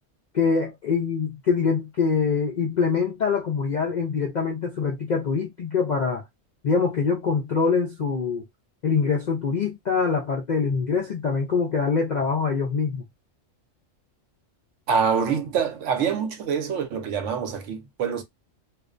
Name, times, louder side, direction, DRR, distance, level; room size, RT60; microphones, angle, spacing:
voice 1, 0.3-6.2 6.6-8.4 8.8-13.0, left 5 dB, 65° left, 0.4 m, -24 dB
voice 2, 14.9-18.2, right 6 dB, 75° right, 1.0 m, -25 dB
2.5 x 2.1 x 2.4 m
omnidirectional pair, 1.3 m